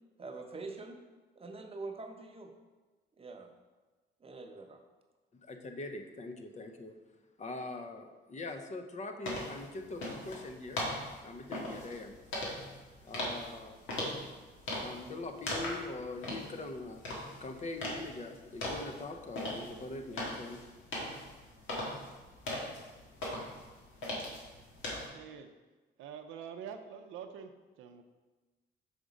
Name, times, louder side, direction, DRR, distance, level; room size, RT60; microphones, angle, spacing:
voice 1, 0.2-1.0 1.4-2.5 3.2-3.5 4.2-4.8, right 3 dB, 30° right, 3 dB, 0.8 m, -44 dB
voice 2, 5.4-7.0 7.4-10.8 11.2-12.2 13.0-13.8 14.7-17.0 17.4-20.6, left 2 dB, 35° left, 5 dB, 0.6 m, -42 dB
sound 1, 9.2-25.1, left 1 dB, 85° left, 1.5 m, -40 dB
voice 3, 25.1-25.5 26.0-27.5 27.8-28.0, right 7 dB, 85° right, 6 dB, 0.5 m, -45 dB
5.1 x 3.7 x 5.1 m, 1.2 s
cardioid pair, 90°, 20 cm